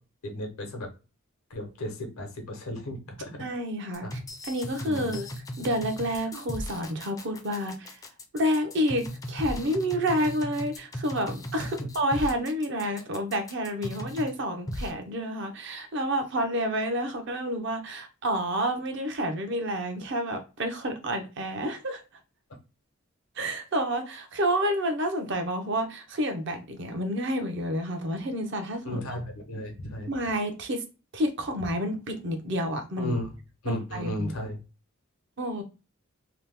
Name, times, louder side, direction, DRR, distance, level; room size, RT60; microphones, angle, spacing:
voice 1, 0.2-0.9 1.5-3.4 4.0-4.1 4.8-5.1 28.8-30.1 33.0-33.3 33.6-34.6, left 1 dB, 90° left, 0.8 m, -34 dB
voice 2, 3.4-5.3 5.6-8.0 8.3-22.0 23.4-29.0 30.1-30.8 31.1-33.2 33.7-34.3 35.4-35.6, equal, 60° right, 0.6 m, -29 dB
sound 1, 3.9-14.3 14.7-14.9, left 1 dB, 15° left, 0.4 m, -37 dB
2.9 x 2.1 x 3.3 m
head